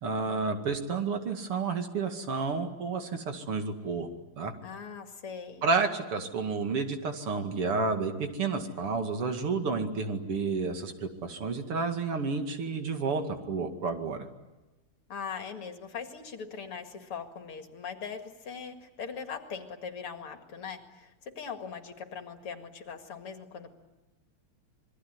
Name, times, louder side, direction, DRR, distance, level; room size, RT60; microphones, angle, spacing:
voice 1, 0.0-4.1 4.4-4.5 5.6-14.3, right 4 dB, 85° right, 5 dB, 3.2 m, -30 dB
voice 2, 4.6-5.7 15.1-23.7, left 6 dB, 85° left, 5 dB, 3.1 m, -41 dB
26.5 x 22.0 x 9.6 m, 1.1 s
omnidirectional pair, 2.4 m